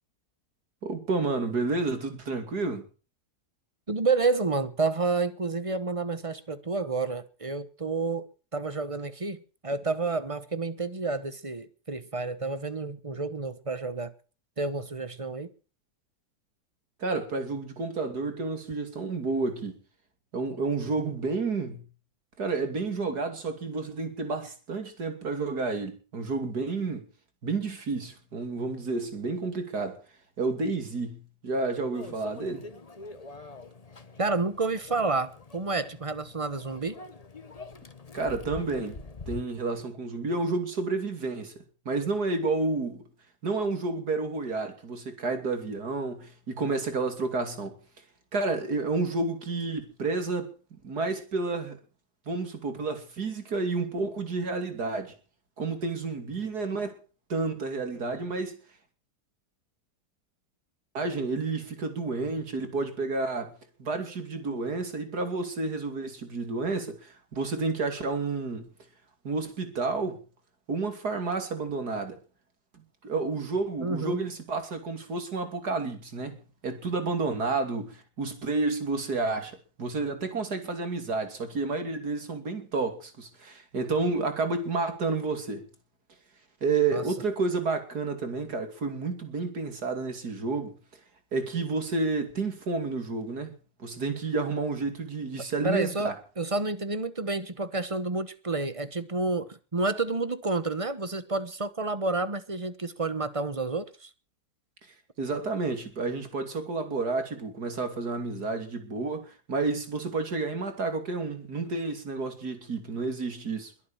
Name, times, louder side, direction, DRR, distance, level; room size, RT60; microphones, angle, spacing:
voice 1, 0.8-2.9 17.0-19.8 20.3-21.8 22.4-27.0 27.4-30.0 30.4-32.7 38.1-39.0 39.3-41.5 41.8-43.0 43.4-47.8 48.3-50.5 50.8-51.8 52.3-55.1 55.6-57.0 57.3-58.6 60.9-63.5 63.8-68.7 69.2-70.2 70.7-72.2 72.7-76.4 76.6-79.5 79.8-85.7 86.6-90.8 91.3-93.5 93.8-96.1 105.2-113.7, right 3 dB, 80° right, 3.4 m, -30 dB
voice 2, 3.9-8.3 8.5-9.4 9.6-14.1 14.6-15.5 34.2-37.0 73.8-74.2 86.9-87.0 95.6-104.1, right 3 dB, 25° right, 1.1 m, -30 dB
Microwave oven, 31.9-39.4, left 3 dB, 25° left, 1.3 m, -45 dB
22.0 x 8.6 x 7.3 m
omnidirectional pair, 1.7 m